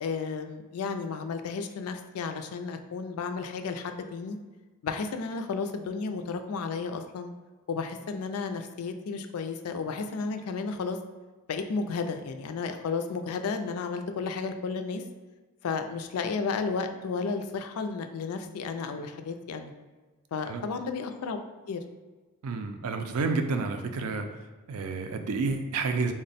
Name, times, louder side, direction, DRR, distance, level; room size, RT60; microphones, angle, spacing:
voice 1, 0.0-4.4 4.8-7.3 7.7-11.0 11.5-15.0 15.6-19.7 20.3-21.4 21.7-21.8, left 4 dB, 80° left, 7 dB, 0.4 m, -33 dB
voice 2, 22.4-24.2 24.7-26.1, right 4 dB, 80° right, 6 dB, 0.4 m, -29 dB
3.5 x 2.1 x 4.0 m, 1.3 s
head